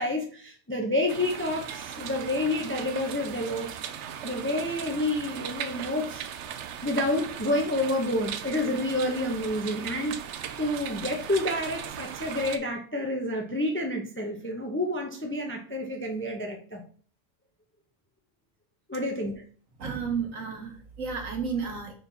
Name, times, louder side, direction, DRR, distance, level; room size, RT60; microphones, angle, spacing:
voice 1, 0.0-3.7 4.2-6.3 6.8-16.8 18.9-19.4, left 1 dB, 10° left, 2 dB, 0.6 m, -29 dB
sound 1, 1.1-12.6, right 9 dB, 65° right, 0.8 m, -38 dB
voice 2, 19.8-21.9, right 6 dB, 85° right, 3 dB, 1.7 m, -32 dB
5.4 x 4.3 x 4.0 m, 0.43 s
omnidirectional pair, 1.4 m